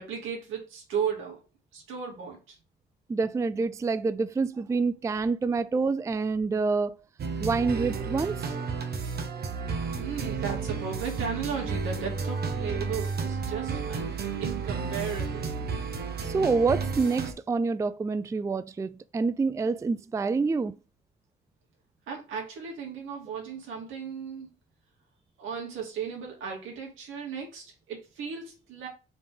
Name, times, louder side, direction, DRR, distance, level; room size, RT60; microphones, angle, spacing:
voice 1, 0.0-1.4 1.7-2.6 10.0-15.5 22.1-24.5 25.4-28.9, right 6 dB, 85° right, 2.6 m, -35 dB
voice 2, 3.1-7.0 7.4-8.5 16.2-20.8, right 4 dB, 15° right, 0.3 m, -27 dB
sound 1, 7.2-17.3, right 5 dB, 50° right, 1.2 m, -32 dB
4.9 x 3.7 x 5.1 m
cardioid pair, 90°, 20 cm